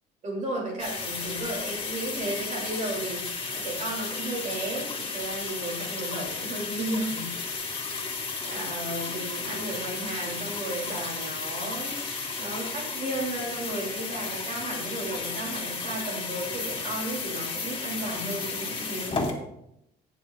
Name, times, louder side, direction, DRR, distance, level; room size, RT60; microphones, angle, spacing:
voice 1, 0.2-7.3 8.4-12.0 12.4-19.2, right 1 dB, 45° right, -2 dB, 2.8 m, -34 dB
sound 1, 0.8-19.3, left 4 dB, 30° left, 1.8 m, -33 dB
17.0 x 6.8 x 2.4 m, 0.81 s
cardioid pair, 110°, 17 cm